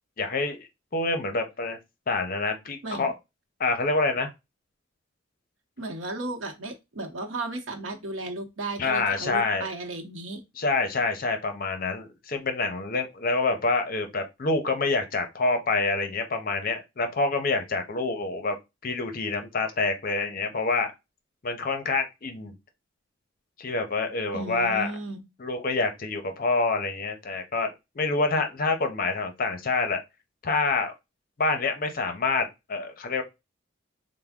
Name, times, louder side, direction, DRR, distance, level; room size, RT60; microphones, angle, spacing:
voice 1, 0.2-1.8 2.1-3.1 3.6-4.3 8.8-9.7 10.6-18.6 18.8-20.9 21.4-22.5 23.6-24.9 25.4-30.0 30.4-30.9 31.4-33.2, left 3 dB, 45° left, 0.6 m, -27 dB
voice 2, 5.8-10.4 24.3-25.2, right 2 dB, 80° right, 0.8 m, -34 dB
3.4 x 2.1 x 3.4 m
head